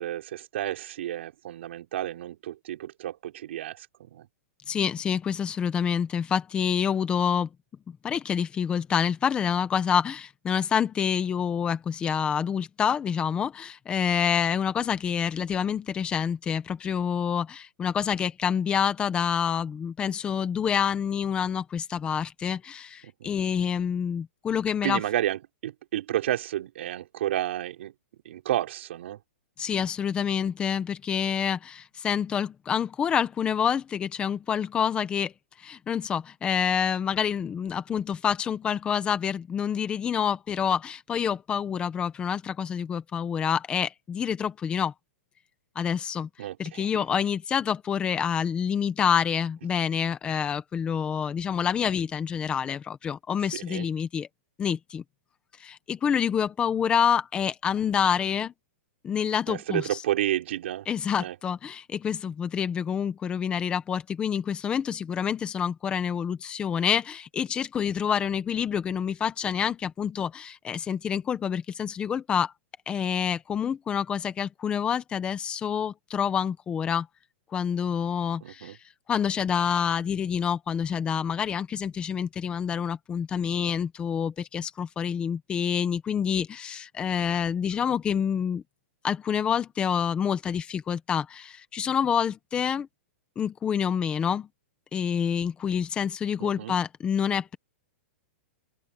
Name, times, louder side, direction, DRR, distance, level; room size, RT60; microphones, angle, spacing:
voice 1, 0.0-4.3 23.0-23.3 24.8-27.9 28.2-29.2 46.4-47.0 53.5-53.9 59.5-60.9 61.2-61.4 78.4-78.8 96.4-96.8, right 12 dB, 60° right, 5.6 m, -31 dB
voice 2, 4.7-7.5 7.9-25.0 29.6-35.3 35.6-44.9 45.7-46.3 46.6-54.3 54.6-55.0 55.6-58.5 59.0-59.8 60.9-72.5 72.9-77.1 77.5-78.8 79.1-88.6 89.0-92.9 93.4-94.5 94.9-97.6, left 7 dB, 15° left, 1.2 m, -27 dB
open air
hypercardioid pair, 160°, 7 cm